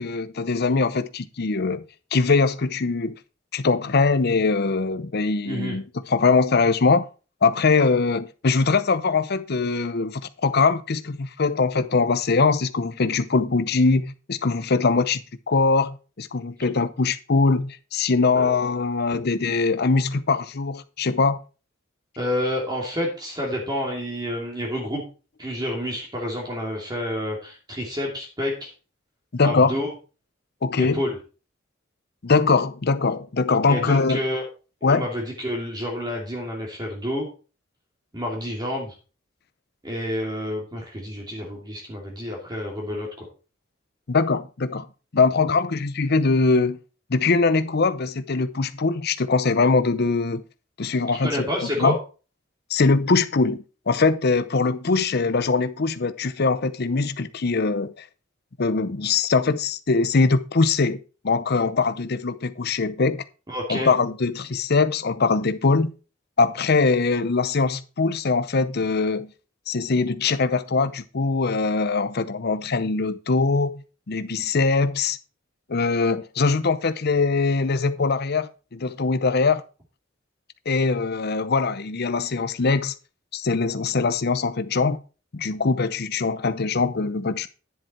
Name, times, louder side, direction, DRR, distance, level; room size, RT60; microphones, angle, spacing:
voice 1, 0.0-1.8 2.1-3.1 3.5-7.1 7.4-21.4 29.3-29.8 30.6-31.0 32.2-34.2 34.8-35.1 44.1-44.9 45.1-46.8 47.1-50.4 50.8-51.3 51.8-51.9 52.7-58.0 58.6-63.2 63.7-65.9 66.4-69.3 69.7-75.2 75.7-79.6 80.7-82.9 83.3-85.0 85.3-87.5, left 4 dB, 55° left, 0.7 m, -22 dB
voice 2, 5.4-5.8 18.3-18.5 22.2-25.0 25.4-28.7 29.4-29.9 30.8-31.2 33.7-34.4 34.9-37.3 38.1-38.9 39.8-43.3 51.1-52.0 63.5-63.9, left 1 dB, 20° right, 2.8 m, -29 dB
10.5 x 7.6 x 4.4 m
head